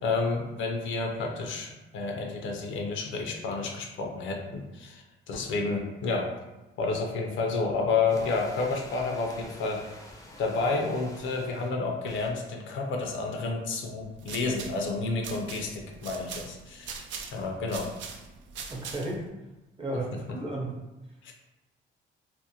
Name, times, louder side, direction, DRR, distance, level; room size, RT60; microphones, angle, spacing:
voice 1, 0.0-6.3 6.8-9.8 10.4-16.9 17.3-17.9 21.2-21.3, left 3 dB, 75° left, 2 dB, 0.5 m, -30 dB
sound 1, 8.1-11.7 12.1-12.3 13.1-13.2 17.4-17.5, left 1 dB, 15° left, 0.5 m, -48 dB
sound 2, 14.0-19.3, right 5 dB, 70° right, 0.4 m, -42 dB
voice 2, 18.7-19.2 19.8-20.7, right 1 dB, 30° right, -2 dB, 0.7 m, -33 dB
2.5 x 2.0 x 2.7 m, 1.0 s
cardioid pair, 90°, 20 cm